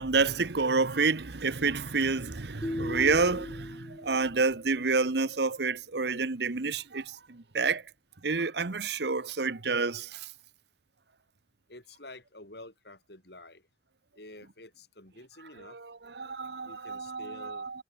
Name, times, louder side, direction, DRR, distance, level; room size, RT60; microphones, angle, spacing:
voice 1, 0.0-7.8 8.2-10.3 15.7-17.8, right 4 dB, 70° right, 1.0 m, -29 dB
sound 1, 2.6-4.8, left 1 dB, 20° left, 0.7 m, -38 dB
voice 2, 11.7-13.7 14.1-15.8 16.6-17.7, left 2 dB, 65° left, 6.9 m, -49 dB
head